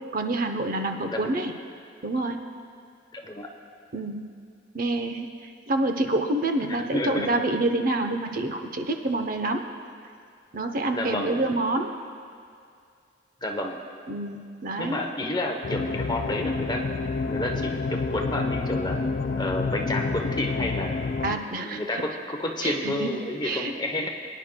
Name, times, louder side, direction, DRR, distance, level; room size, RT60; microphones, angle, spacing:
voice 1, 0.1-1.5 2.0-2.4 3.9-4.2 4.7-5.3 5.7-9.6 10.5-11.9 14.1-15.0 21.2-21.8 22.6-23.1 23.4-23.7, right 2 dB, 50° right, 5 dB, 0.7 m, -27 dB
voice 2, 3.1-3.5 6.7-7.3 10.9-11.3 13.4-13.8 14.8-16.8 17.2-19.0 19.4-21.0 21.3-24.1, left 1 dB, 25° left, 2 dB, 0.8 m, -30 dB
sound 1, 15.6-21.4, left 3 dB, 45° left, 0.3 m, -28 dB
22.5 x 9.9 x 2.2 m, 2.3 s
head